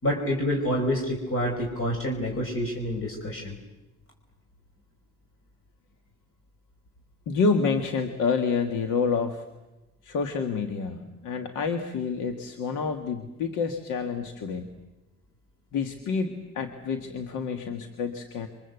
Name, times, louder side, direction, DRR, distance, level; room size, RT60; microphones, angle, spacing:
voice 1, 0.0-3.6, equal, 45° left, 1 dB, 5.0 m, -27 dB
voice 2, 7.3-9.4 10.0-14.7 15.7-18.5, left 5 dB, 85° left, 6 dB, 1.9 m, -28 dB
28.0 x 24.5 x 8.1 m, 1.0 s
cardioid pair, 90°, 30 cm